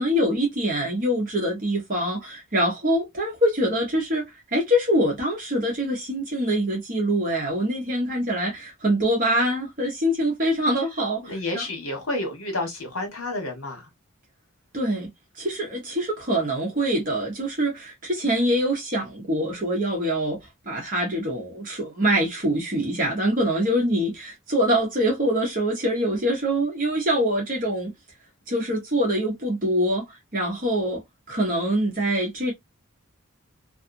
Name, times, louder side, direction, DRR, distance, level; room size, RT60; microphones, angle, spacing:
voice 1, 0.0-4.2 4.5-11.6 14.7-15.1 15.4-20.4 20.7-27.9 28.5-30.0 30.3-31.0 31.3-32.5, equal, 40° right, 1.0 m, -24 dB
voice 2, 11.2-13.9, left 2 dB, 75° left, 1.3 m, -30 dB
2.6 x 2.5 x 2.6 m
head